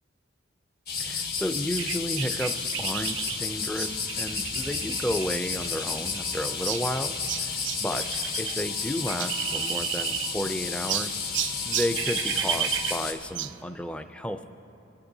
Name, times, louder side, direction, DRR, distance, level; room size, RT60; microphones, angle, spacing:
sound 1, 0.9-13.1, left 5 dB, 50° left, 1.3 m, -32 dB
voice 1, 1.0-11.3 11.6-14.4, left 1 dB, 5° left, 7 dB, 0.4 m, -32 dB
sound 2, 1.8-8.6 8.8-10.5 10.9-13.6, right 11 dB, 65° right, 0.3 m, -33 dB
25.5 x 11.5 x 2.7 m, 2.9 s
head